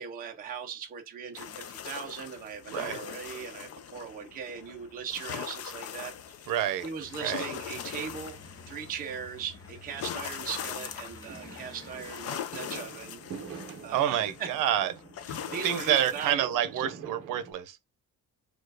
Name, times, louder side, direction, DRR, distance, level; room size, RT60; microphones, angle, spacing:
voice 1, 0.0-6.5 6.8-8.4 8.7-13.2 13.8-14.5 15.3-16.5 16.7-16.8, right 7 dB, 25° right, 0.7 m, -39 dB
sound 1, 1.3-16.3, left 9 dB, 45° left, 0.5 m, -41 dB
voice 2, 6.5-6.9 7.2-7.4 13.9-14.9 15.6-17.8, right 11 dB, 70° right, 0.8 m, -28 dB
sound 2, 7.0-12.2, left 2 dB, 10° left, 0.8 m, -51 dB
Fireworks, 11.3-17.5, right 6 dB, 45° right, 1.0 m, -46 dB
4.4 x 2.4 x 4.8 m
cardioid pair, 175°, 33 cm